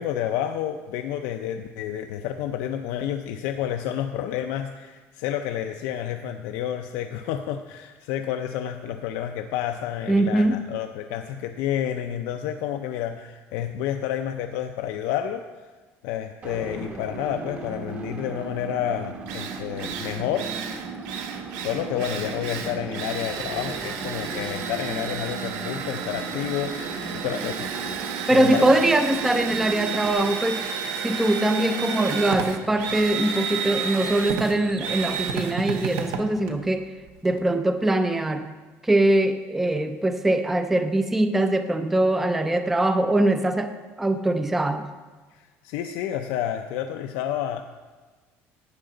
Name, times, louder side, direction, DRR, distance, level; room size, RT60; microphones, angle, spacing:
voice 1, 0.0-15.4 16.0-20.8 21.6-28.0 28.3-28.7 45.3-47.6, left 10 dB, 85° left, 6 dB, 0.5 m, -30 dB
voice 2, 10.1-10.7 28.3-30.7 31.0-36.9 37.2-38.5 38.8-43.7 44.0-44.9, right 1 dB, 5° right, 8 dB, 0.4 m, -22 dB
sound 1, 16.4-30.1, right 4 dB, 30° right, 0.9 m, -37 dB
Drill, 18.8-18.9 19.3-37.4, right 6 dB, 85° right, 1.0 m, -32 dB
11.5 x 8.8 x 3.9 m, 1.3 s
cardioid pair, 175°, 5 cm